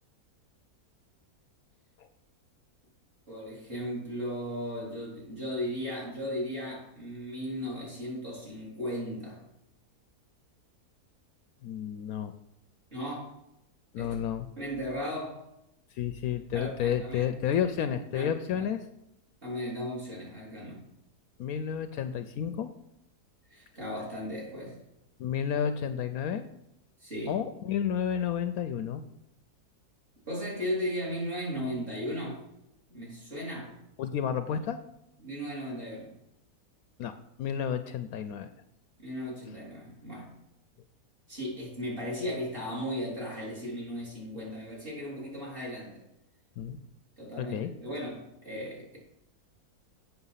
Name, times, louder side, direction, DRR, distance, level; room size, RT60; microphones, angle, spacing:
voice 1, 3.3-9.4 12.9-13.3 14.0-14.2 14.6-15.4 16.5-16.7 17.0-17.2 18.1-18.3 18.5-18.7 19.4-20.8 23.5-24.8 27.0-27.4 30.3-32.4 32.9-33.8 35.2-36.1 39.0-40.3 41.3-46.0 47.2-49.0, equal, 35° right, -5 dB, 3.6 m, -36 dB
voice 2, 11.6-12.3 13.9-14.5 15.9-18.8 21.4-22.7 25.2-26.4 27.3-29.0 34.0-34.8 37.0-37.1 37.4-38.5 46.6-46.8 47.4-47.7, left 8 dB, 70° left, 9 dB, 1.0 m, -31 dB
8.0 x 6.1 x 5.6 m, 0.85 s
omnidirectional pair, 1.7 m